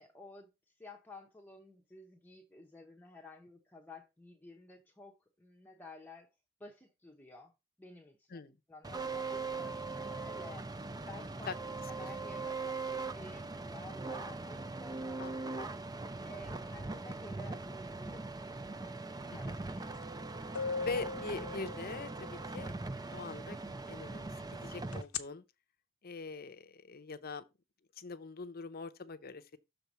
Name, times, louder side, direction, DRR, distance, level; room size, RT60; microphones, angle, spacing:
voice 1, 0.0-6.3 6.6-7.5 7.8-8.4 8.7-10.7 11.0-11.6 11.9-15.7 16.2-18.4 18.7-19.1 19.3-19.9, left 2 dB, 10° left, 0.8 m, -53 dB
sound 1, 8.8-25.0, right 3 dB, 20° right, 0.5 m, -41 dB
voice 2, 15.2-15.5 19.3-19.6 20.8-22.7 23.1-23.6 23.9-25.4 26.0-27.4 28.0-29.6, left 4 dB, 45° left, 0.7 m, -43 dB
sound 2, 20.0-20.1 20.5-22.3 24.9-25.2, left 5 dB, 90° left, 0.8 m, -38 dB
6.9 x 3.8 x 6.1 m
head